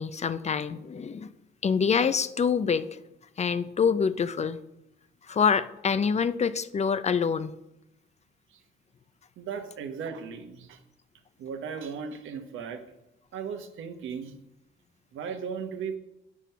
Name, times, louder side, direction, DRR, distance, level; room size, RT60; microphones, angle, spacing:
voice 1, 0.0-1.3 1.6-3.0 3.4-4.6 5.3-7.5, left 6 dB, 35° left, 14 dB, 0.5 m, -26 dB
voice 2, 9.4-10.8 11.4-12.8 13.3-14.3 15.1-16.0, right 6 dB, 80° right, 6 dB, 1.1 m, -36 dB
9.1 x 6.2 x 5.6 m, 0.88 s
cardioid pair, 90°, 20 cm